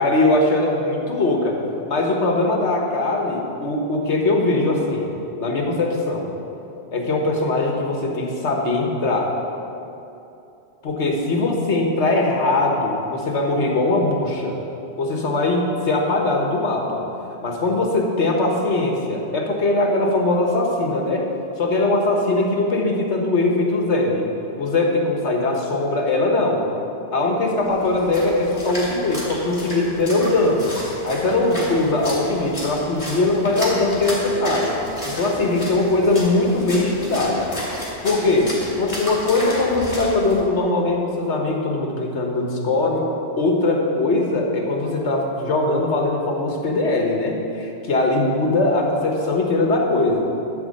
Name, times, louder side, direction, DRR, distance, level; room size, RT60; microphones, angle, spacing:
voice 1, 0.0-1.6 1.9-5.1 5.4-6.3 6.9-9.3 10.8-14.5 15.0-17.0 17.4-21.3 21.6-24.3 24.6-26.7 27.1-30.7 31.0-34.8 35.1-37.5 38.0-43.0 43.4-50.2, left 2 dB, 85° left, 1 dB, 1.6 m, -21 dB
Splash splatter, 27.6-40.4, equal, 35° left, 2.6 m, -33 dB
12.0 x 4.4 x 7.6 m, 2.8 s
omnidirectional pair, 1.1 m